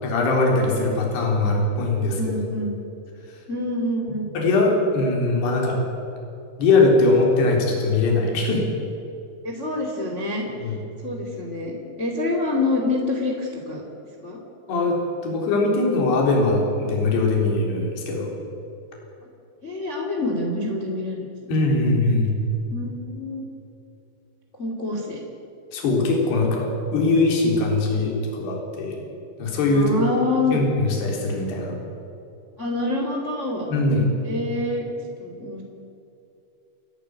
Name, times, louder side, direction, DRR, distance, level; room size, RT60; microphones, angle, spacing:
voice 1, 0.0-2.4 4.4-5.8 6.6-8.6 10.6-10.8 14.7-15.0 15.2-18.3 21.5-22.4 25.7-29.0 29.4-30.0 30.5-31.8 33.7-34.1, left 2 dB, 60° left, 0 dB, 5.6 m, -21 dB
voice 2, 2.0-2.7 3.5-4.2 9.4-10.8 11.0-13.8 14.2-14.4 19.6-21.5 22.7-23.4 24.5-25.2 29.6-30.6 32.6-33.7 34.2-34.8 35.2-35.6, left 2 dB, 20° left, 1 dB, 2.1 m, -27 dB
29.0 x 11.5 x 9.6 m, 2.7 s
omnidirectional pair, 5.4 m